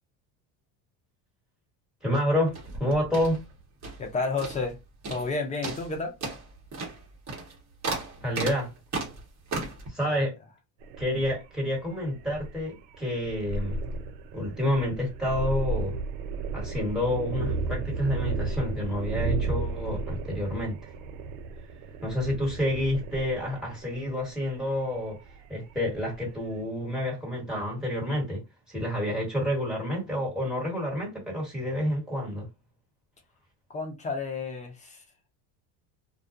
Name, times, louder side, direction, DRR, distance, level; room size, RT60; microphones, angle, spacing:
voice 1, 2.0-3.4 8.2-8.7 9.9-10.3 11.0-13.8 14.3-16.0 16.5-20.9 22.0-25.2 25.5-28.4 28.7-32.5, left 1 dB, ahead, 1.4 m, -29 dB
sound 1, 2.5-4.1 4.4-4.8 5.0-5.3 5.6-9.9, right 3 dB, 35° right, 1.0 m, -35 dB
voice 2, 4.0-4.8 5.1-6.1 10.0-10.2 33.7-35.0, left 3 dB, 15° left, 0.3 m, -31 dB
sound 2, 10.8-26.3, right 3 dB, 70° right, 0.6 m, -34 dB
2.3 x 2.1 x 2.5 m
supercardioid pair, 115°, 49 cm